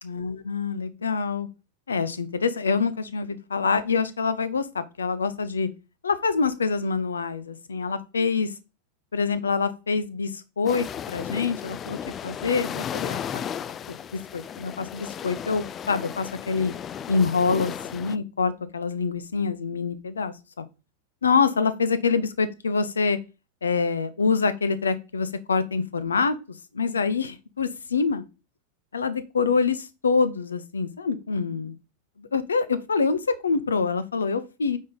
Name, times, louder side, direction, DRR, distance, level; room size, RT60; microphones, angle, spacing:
voice 1, 0.0-1.5 1.9-5.7 6.0-8.5 9.1-12.0 12.2-13.5 13.9-16.7 17.1-20.6 21.2-23.2 23.6-26.4 26.7-28.2 28.9-31.7 32.2-34.8, left 5 dB, 70° left, 0.6 m, -26 dB
sound 1, 10.7-18.2, left 8 dB, 25° left, 0.3 m, -35 dB
8.5 x 3.6 x 3.9 m
figure-of-eight pair, 90°, 0 cm